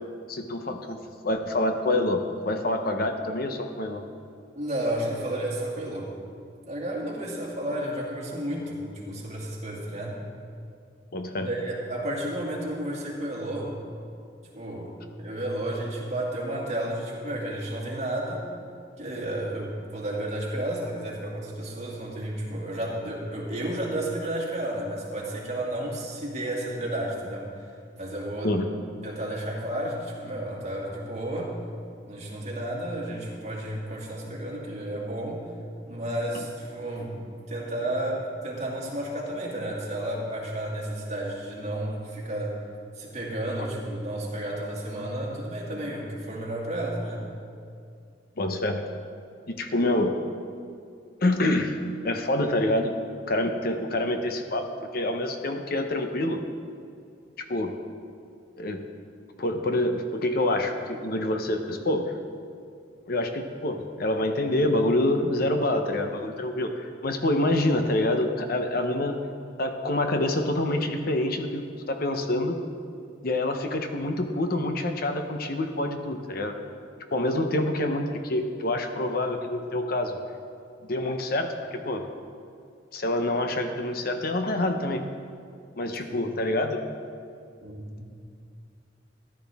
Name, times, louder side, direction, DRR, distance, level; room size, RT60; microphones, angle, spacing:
voice 1, 0.3-4.0 11.1-11.5 28.4-28.7 36.3-36.4 48.4-48.8 49.5-50.1 51.2-51.7 52.0-52.9 53.3-54.6 54.9-56.4 57.5-57.8 58.6-58.9 59.4-62.2 63.1-69.2 69.6-72.6 73.2-76.5 77.1-80.2 80.9-82.0 82.9-85.0 85.8-86.8, left 1 dB, 55° left, 5 dB, 0.9 m, -26 dB
voice 2, 4.5-6.1 6.7-10.2 11.3-13.8 14.5-18.5 19.0-27.7 28.0-28.5 29.0-31.6 32.0-35.5 35.8-42.6 43.0-47.2 86.0-86.2 87.6-88.1, right 1 dB, 40° right, -3 dB, 2.4 m, -32 dB
14.5 x 12.0 x 3.6 m, 2.4 s
head